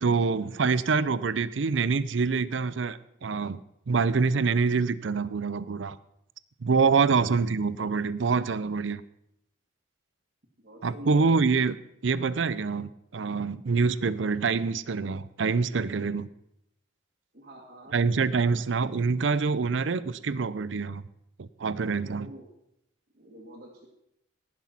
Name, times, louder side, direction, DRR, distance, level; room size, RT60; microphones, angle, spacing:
voice 1, 0.0-3.6 3.9-6.0 6.6-9.0 10.8-11.8 12.0-16.3 17.9-21.0 21.4-22.3, right 4 dB, 75° right, 17 dB, 0.5 m, -26 dB
voice 2, 10.6-11.3 17.3-18.0 22.0-22.5 23.1-23.9, equal, 50° right, -3 dB, 1.7 m, -47 dB
18.0 x 6.2 x 5.9 m, 0.79 s
head